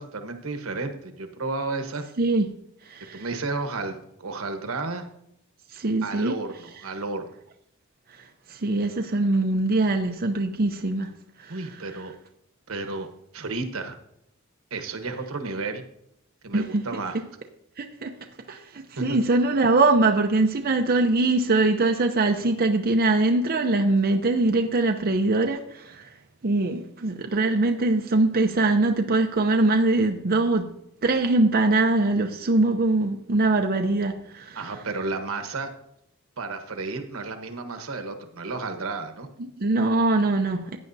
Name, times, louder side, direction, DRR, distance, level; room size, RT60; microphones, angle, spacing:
voice 1, 0.0-2.0 3.1-5.1 6.0-7.3 11.5-12.1 12.7-13.1 13.3-14.0 14.7-15.8 16.4-17.2 18.5-18.6 19.0-19.2 34.5-35.7 36.4-39.3, right 3 dB, 85° right, 7 dB, 1.1 m, -32 dB
voice 2, 2.9-3.2 5.7-6.3 8.5-11.1 11.4-11.6 16.5-16.8 17.8-18.1 18.5-26.1 26.4-30.7 31.0-34.7 39.4-40.8, right 2 dB, 45° right, 3 dB, 0.7 m, -22 dB
15.5 x 9.2 x 2.7 m, 0.77 s
head